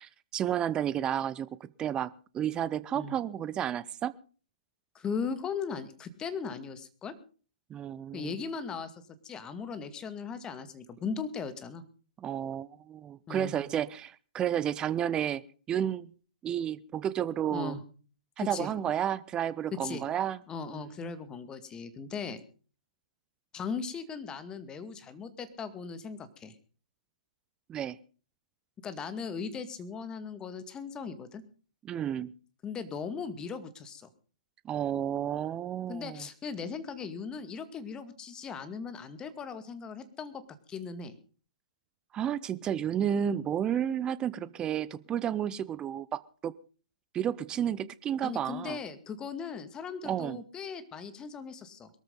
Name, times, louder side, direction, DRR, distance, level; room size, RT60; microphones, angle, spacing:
voice 1, 0.0-4.1 7.7-8.3 12.2-15.4 15.7-16.1 16.4-17.7 18.4-20.4 20.7-20.9 27.7-28.0 31.8-32.3 34.6-36.3 42.1-46.5 47.1-48.8 50.0-50.4, right 9 dB, 20° right, 0.7 m, -31 dB
voice 2, 4.9-7.1 8.1-8.9 9.2-11.8 13.3-13.5 17.5-17.8 18.4-18.7 19.7-20.0 20.5-22.4 23.5-26.5 28.8-31.4 32.6-34.1 35.9-40.4 40.7-41.2 48.2-51.9, left 5 dB, 15° left, 2.1 m, -38 dB
22.5 x 14.0 x 3.9 m
figure-of-eight pair, 120°, 4 cm